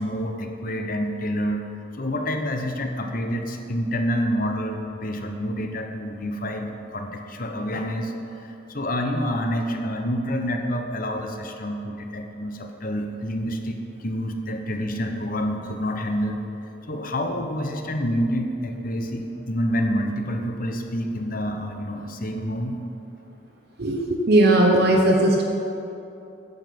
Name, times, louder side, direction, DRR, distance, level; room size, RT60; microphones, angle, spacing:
voice 1, 0.0-1.6 2.0-16.4 16.9-22.8, equal, 40° left, 4 dB, 1.0 m, -28 dB
voice 2, 23.8-25.4, right 1 dB, 50° right, 0 dB, 0.9 m, -18 dB
9.9 x 6.8 x 8.4 m, 2.9 s
head